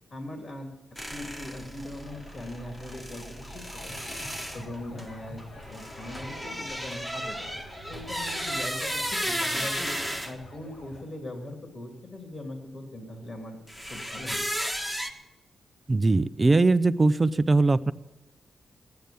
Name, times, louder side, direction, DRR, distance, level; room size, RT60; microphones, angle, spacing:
voice 1, 0.1-7.5 7.9-10.0 10.2-13.6 13.9-14.4, left 1 dB, 45° left, 2 dB, 2.9 m, -40 dB
sound 1, 1.0-10.3 13.7-15.1, equal, 10° left, 1.4 m, -34 dB
sound 2, 1.5-11.0, left 1 dB, 75° left, 3.9 m, -47 dB
voice 2, 15.9-17.9, right 3 dB, 25° right, 13 dB, 0.6 m, -21 dB
15.0 x 10.5 x 8.4 m, 1.0 s
cardioid pair, 95°, 0 cm